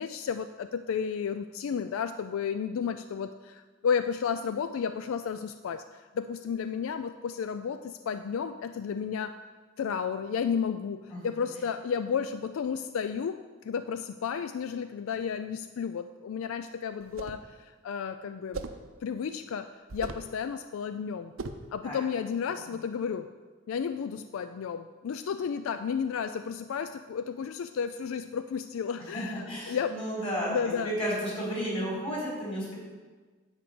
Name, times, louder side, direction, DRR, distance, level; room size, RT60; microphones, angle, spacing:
voice 1, 0.0-9.3 9.8-18.6 19.0-21.3 21.7-23.3 23.7-29.9 30.5-30.9, left 6 dB, 75° left, 10 dB, 0.3 m, -32 dB
sound 1, 17.0-17.5 18.5-18.9 19.9-20.3 21.4-21.7, right 3 dB, 70° right, 0.6 m, -38 dB
voice 2, 29.1-30.5 30.8-32.7, equal, 25° left, -6 dB, 3.5 m, -32 dB
10.0 x 4.6 x 7.7 m, 1.4 s
head